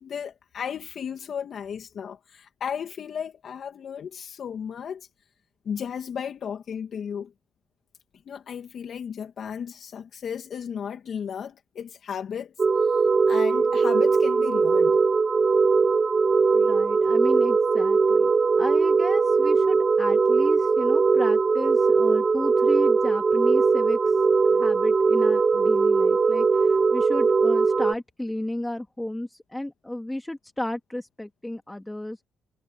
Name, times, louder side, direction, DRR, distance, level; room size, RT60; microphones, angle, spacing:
voice 1, 0.0-5.1 5.6-7.3 8.3-12.5 12.8-15.0, left 7 dB, 60° left, 2.5 m, -34 dB
sound 1, 12.6-27.9, right 4 dB, 35° right, 0.6 m, -20 dB
voice 2, 16.5-18.3 18.6-24.2 24.5-32.2, left 1 dB, 10° left, 2.7 m, -33 dB
supercardioid pair, 70°, 0 cm